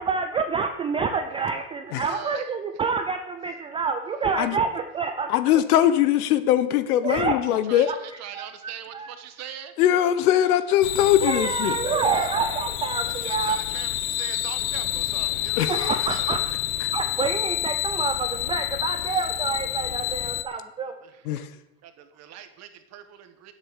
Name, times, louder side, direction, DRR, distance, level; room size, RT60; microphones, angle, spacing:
voice 1, 0.0-5.3 7.0-7.4 7.9-8.0 8.3-9.1 11.2-13.6 15.7-16.4 16.9-20.9, right 5 dB, 15° right, 0.4 m, -27 dB
voice 2, 2.0-2.5 7.6-9.7 10.4-10.5 12.0-12.3 13.1-16.6 19.0-19.3 20.8-21.3 21.8-23.5, right 10 dB, 35° right, 1.4 m, -42 dB
voice 3, 5.3-7.9 9.8-11.8 15.6-16.0 16.8-16.9 21.2-21.5, left 11 dB, 85° left, 1.3 m, -21 dB
sound 1, 10.8-20.4, left 14 dB, 65° left, 1.0 m, -28 dB
9.3 x 8.0 x 8.4 m
supercardioid pair, 145°, 44 cm